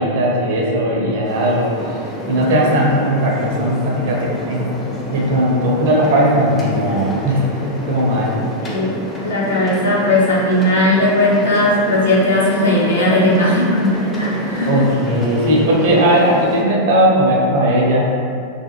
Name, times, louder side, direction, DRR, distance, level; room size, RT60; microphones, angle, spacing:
voice 1, 0.0-1.7 2.3-4.8 5.1-8.3 14.7-18.1, right 1 dB, 55° right, -3 dB, 0.5 m, -17 dB
sound 1, 1.2-16.6, left 1 dB, 20° left, 0.5 m, -28 dB
voice 2, 9.2-14.9, left 1 dB, 70° left, -6 dB, 0.6 m, -17 dB
2.4 x 2.1 x 2.9 m, 2.3 s
figure-of-eight pair, 90°, 0 cm